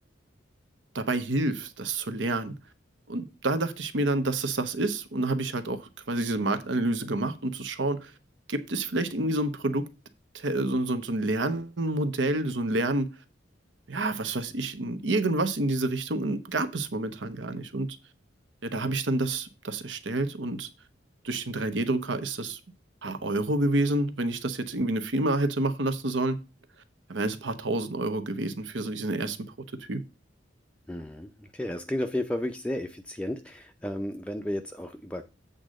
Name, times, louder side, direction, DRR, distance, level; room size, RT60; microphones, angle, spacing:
voice 1, 0.9-2.5 3.1-8.1 8.5-9.8 10.3-13.1 13.9-17.9 18.6-20.7 21.2-22.6 23.0-26.4 27.1-29.4 29.9-30.0, right 2 dB, 75° right, 1.0 m, -28 dB
voice 2, 30.9-35.2, left 1 dB, 5° left, 0.5 m, -33 dB
8.2 x 3.9 x 6.3 m
head